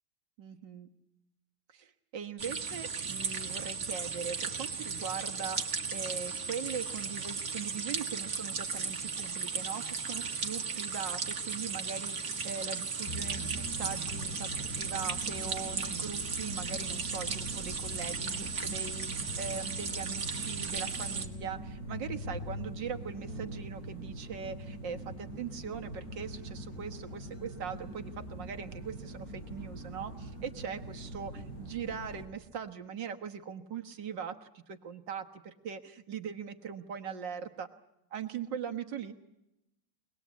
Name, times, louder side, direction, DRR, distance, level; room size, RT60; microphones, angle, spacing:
voice 1, 0.4-0.9 1.7-37.7 38.1-39.1, right 7 dB, 80° right, 6 dB, 2.1 m, -41 dB
sound 1, 2.4-21.3, right 5 dB, 55° right, 2.2 m, -36 dB
sound 2, 13.0-32.2, right 1 dB, 50° left, 7.8 m, -43 dB
25.0 x 20.0 x 8.3 m, 0.87 s
omnidirectional pair, 1.9 m